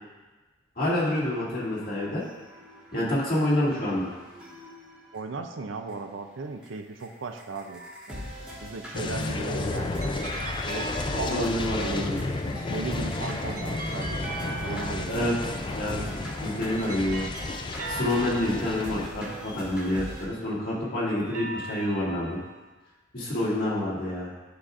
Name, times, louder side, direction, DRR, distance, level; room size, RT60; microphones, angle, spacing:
voice 1, 0.8-2.2 2.9-4.1 11.2-12.2 15.1-15.3 15.7-16.0 16.4-17.3 17.9-22.4 23.1-24.3, left 1 dB, 45° left, -7 dB, 2.2 m, -27 dB
sound 1, 1.6-5.2 5.9-6.0 6.6-6.7 7.0-7.1 7.4-20.2, equal, 5° right, 1.5 m, -42 dB
voice 2, 5.1-7.8 8.1-10.0 10.7-10.9 11.2-12.1 12.5-15.3, right 3 dB, 70° right, 6 dB, 0.5 m, -36 dB
sound 2, 7.7-8.4 10.0-12.0 12.9-15.7 16.4-20.5 21.1-22.7, right 3 dB, 40° right, 1.1 m, -40 dB
sound 3, 8.9-19.1, left 2 dB, 25° left, 0.3 m, -32 dB
11.5 x 5.0 x 2.5 m, 1.2 s
head